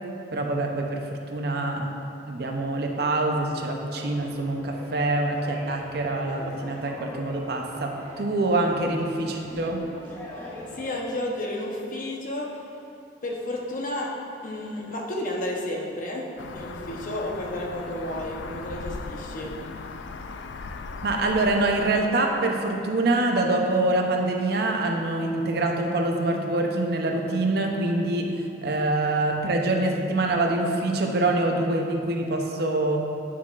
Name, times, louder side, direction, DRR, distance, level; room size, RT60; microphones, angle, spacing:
voice 1, 0.3-1.9 2.3-9.8 21.0-33.0, right 2 dB, 60° right, 2 dB, 0.6 m, -25 dB
sound 1, 3.9-11.0, left 1 dB, 15° left, 1.0 m, -42 dB
voice 2, 10.7-12.6 13.2-14.2 14.4-19.5, left 1 dB, 50° left, -1 dB, 0.8 m, -32 dB
sound 2, 16.4-22.0, left 4 dB, 85° left, 0.3 m, -38 dB
9.5 x 5.7 x 2.4 m, 2.6 s
head